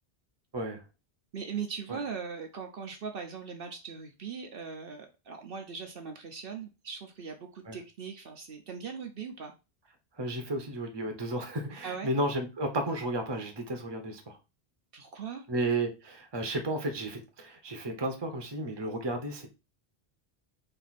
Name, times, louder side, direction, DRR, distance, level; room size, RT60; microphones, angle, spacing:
voice 1, 1.3-9.5 11.8-12.1 14.9-15.5, right 6 dB, 60° right, 4 dB, 0.9 m, -40 dB
voice 2, 10.2-14.4 15.5-19.5, right 1 dB, 25° right, 4 dB, 0.8 m, -33 dB
4.4 x 2.7 x 4.0 m, 0.27 s
omnidirectional pair, 1.1 m